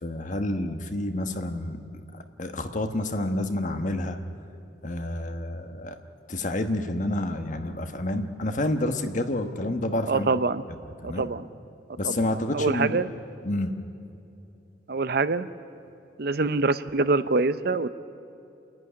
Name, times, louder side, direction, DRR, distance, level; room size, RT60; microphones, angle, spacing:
voice 1, 0.0-1.8 2.4-4.2 4.8-6.0 6.3-10.3 10.7-10.8 11.0-11.2 12.0-13.0 13.4-13.7, left 1 dB, 45° left, 7 dB, 1.3 m, -29 dB
voice 2, 10.1-10.6 11.0-11.4 12.0-12.3 12.5-13.1 14.9-15.5 16.2-17.9, right 3 dB, 60° right, 13 dB, 0.7 m, -25 dB
29.5 x 11.0 x 9.9 m, 2.8 s
head